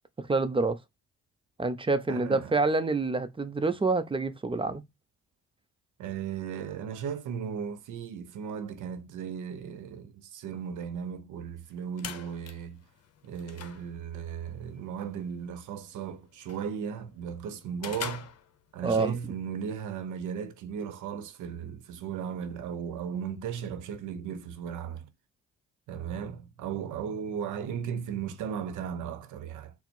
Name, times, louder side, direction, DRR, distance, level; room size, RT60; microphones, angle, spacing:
voice 1, 0.2-0.8 1.6-4.8 18.8-19.2, right 3 dB, 15° right, 0.6 m, -27 dB
voice 2, 2.1-2.5 6.0-12.8 13.2-18.3 18.7-25.1 25.9-29.7, right 7 dB, 80° right, 0.8 m, -36 dB
sound 1, 11.6-19.1, left 8 dB, 55° left, 0.8 m, -45 dB
4.1 x 2.1 x 4.3 m
cardioid pair, 90°, 30 cm